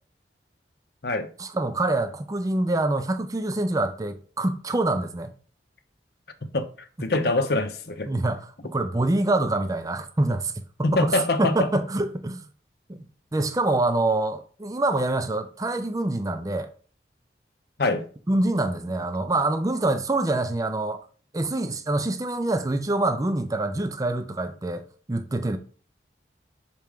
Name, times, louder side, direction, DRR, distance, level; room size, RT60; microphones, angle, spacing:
voice 1, 1.4-5.3 8.1-10.5 10.8-12.4 12.9-13.0 13.3-16.7 18.3-21.0 21.3-25.6, right 2 dB, 20° right, 0.4 m, -25 dB
voice 2, 7.0-8.1 10.8-11.7 17.8-18.0, left 2 dB, 60° left, 0.7 m, -24 dB
6.2 x 4.4 x 3.6 m
head